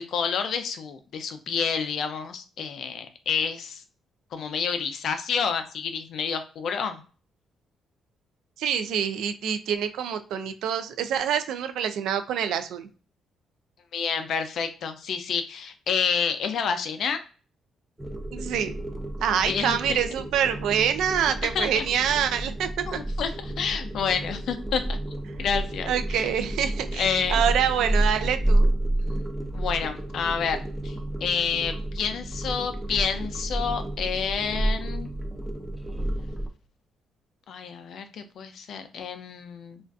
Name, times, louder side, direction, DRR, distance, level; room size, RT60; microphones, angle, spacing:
voice 1, 0.0-3.8 4.3-7.0 13.9-17.2 19.4-20.0 21.5-21.8 22.9-25.0 25.4-26.3 27.0-27.5 29.5-30.6 30.8-30.9 31.2-35.1 37.5-39.8, left 6 dB, 70° left, 8 dB, 0.3 m, -29 dB
voice 2, 8.6-12.9 18.3-18.7 19.2-23.0 25.9-28.7, right 8 dB, 80° right, 9 dB, 0.3 m, -26 dB
sound 1, 18.0-36.5, right 1 dB, 10° right, 0.4 m, -30 dB
2.4 x 2.3 x 2.3 m, 0.38 s
cardioid pair, 90°, 0 cm